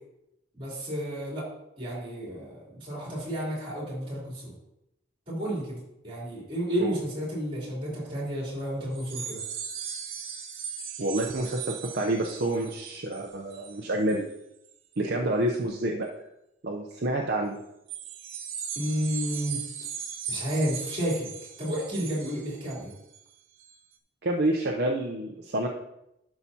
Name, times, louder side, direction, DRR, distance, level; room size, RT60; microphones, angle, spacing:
voice 1, 0.5-1.5 1.8-4.5 5.3-9.4 18.7-19.9 20.3-21.3 21.6-22.9, equal, 25° right, -5 dB, 3.2 m, -31 dB
sound 1, 8.9-14.3 14.7-15.0 15.5-15.6 17.9-23.2 23.6-23.8, right 7 dB, 75° right, 1.0 m, -38 dB
voice 2, 11.0-14.3 15.0-16.1 16.6-17.6 24.2-25.7, right 1 dB, 50° right, 0 dB, 0.6 m, -28 dB
11.5 x 5.7 x 2.8 m, 0.85 s
head